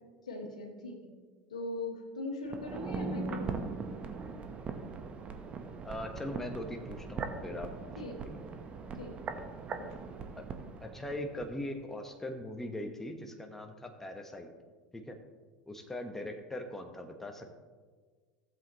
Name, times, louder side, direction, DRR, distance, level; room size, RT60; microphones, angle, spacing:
voice 1, 0.3-1.1 1.5-3.5 8.0-8.3 9.0-9.1 9.8-9.9, left 2 dB, 90° left, 1 dB, 1.7 m, -40 dB
sound 1, 2.5-11.5 11.8-11.9, right 4 dB, 35° right, 1.1 m, -40 dB
voice 2, 5.8-7.7 8.2-8.4 9.3-9.4 10.3-10.4 10.8-14.5 14.9-15.2 15.7-17.5, left 1 dB, 10° left, 4 dB, 1.2 m, -40 dB
15.0 x 7.6 x 3.0 m, 1.5 s
hypercardioid pair, 80°, 4 cm